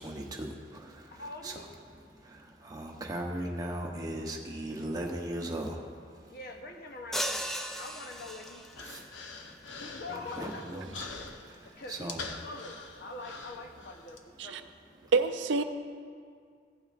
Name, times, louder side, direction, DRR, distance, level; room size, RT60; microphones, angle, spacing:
voice 1, 0.0-1.5 2.1-6.4 8.9-9.8 10.1-12.2, right 1 dB, 20° right, 0 dB, 0.9 m, -39 dB
voice 2, 1.1-1.7 6.3-7.5 7.8-8.9 9.8-10.6 11.7-14.7, left 2 dB, 55° left, 3 dB, 0.8 m, -44 dB
sound 1, 7.1-8.9, equal, ahead, 0.3 m, -36 dB
Human voice, 7.9-14.2, left 4 dB, 85° left, 0.8 m, -45 dB
voice 3, 15.1-15.6, right 4 dB, 75° right, 9 dB, 0.5 m, -26 dB
16.0 x 8.8 x 2.5 m, 2.2 s
head